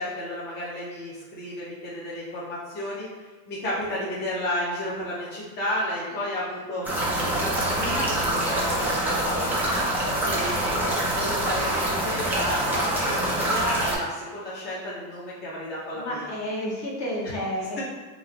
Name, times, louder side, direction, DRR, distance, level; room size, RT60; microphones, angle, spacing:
voice 1, 0.0-6.9 7.3-9.8 10.2-16.3, left 1 dB, 20° left, -8 dB, 0.8 m, -32 dB
sound 1, 6.8-13.9, right 1 dB, 5° right, 0.4 m, -25 dB
voice 2, 15.9-17.8, equal, 35° left, -4 dB, 1.1 m, -31 dB
3.1 x 2.5 x 3.8 m, 1.4 s
supercardioid pair, 135°, 45 cm